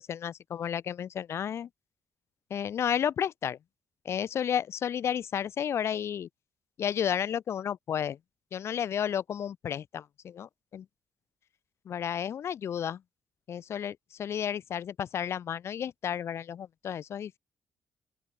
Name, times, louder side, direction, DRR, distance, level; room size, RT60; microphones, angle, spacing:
voice 1, 0.0-1.7 2.5-3.6 4.0-6.3 6.8-8.2 8.5-10.9 11.8-13.0 13.5-17.4, left 9 dB, 65° left, 2.7 m, -32 dB
open air
supercardioid pair, 65°, 5 cm